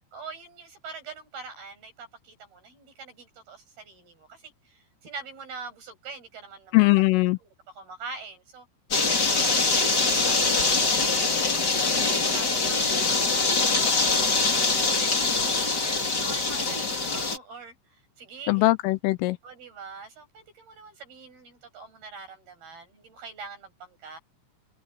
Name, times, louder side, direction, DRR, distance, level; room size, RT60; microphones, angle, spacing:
voice 1, 0.1-8.7 9.2-10.9 11.2-13.2 13.6-14.3 14.7-18.7 19.4-24.2, right 4 dB, 50° right, 9.3 m, -44 dB
voice 2, 6.7-7.4 18.5-19.4, left 22 dB, 80° left, 3.2 m, -20 dB
sound 1, 8.9-17.4, left 3 dB, 25° left, 2.7 m, -23 dB
omnidirectional pair, 5.9 m